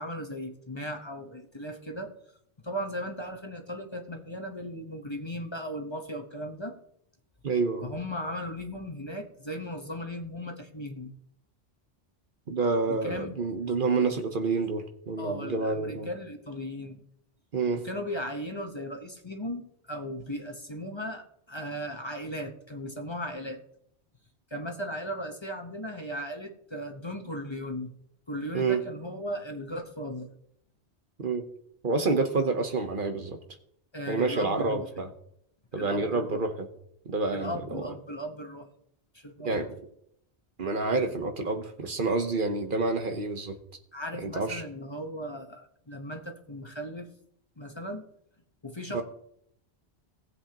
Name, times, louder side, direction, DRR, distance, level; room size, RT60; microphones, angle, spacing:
voice 1, 0.0-2.1 2.6-6.7 7.8-11.1 12.9-13.4 15.2-17.0 17.8-23.6 24.5-27.9 28.3-30.3 33.9-34.9 35.7-36.4 37.3-38.7 39.1-39.5 43.9-47.1 47.6-48.1 48.6-49.0, equal, 25° left, 4 dB, 1.0 m, -37 dB
voice 2, 7.4-7.9 12.5-16.1 17.5-17.8 28.5-28.8 31.2-31.4 31.8-33.4 34.1-35.1 35.7-36.7 37.1-37.8 39.4-39.7 40.6-43.6 44.2-44.6 48.9-49.0, right 3 dB, 55° right, 6 dB, 1.1 m, -28 dB
18.5 x 8.0 x 2.9 m, 0.72 s
omnidirectional pair, 1.1 m